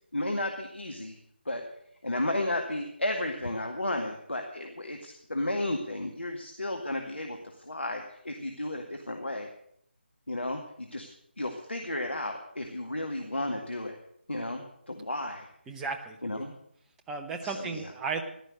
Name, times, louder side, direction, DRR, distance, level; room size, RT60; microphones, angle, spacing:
voice 1, 0.1-1.2 1.5-1.6 2.0-9.5 10.3-11.1 11.4-14.0 14.3-15.5 16.2-16.5 17.4-17.8, left 1 dB, 75° left, 3 dB, 1.9 m, -33 dB
voice 2, 15.7-16.4 17.1-18.2, right 4 dB, 5° right, 4 dB, 0.7 m, -35 dB
14.5 x 12.0 x 6.4 m, 0.72 s
figure-of-eight pair, 155°, 6 cm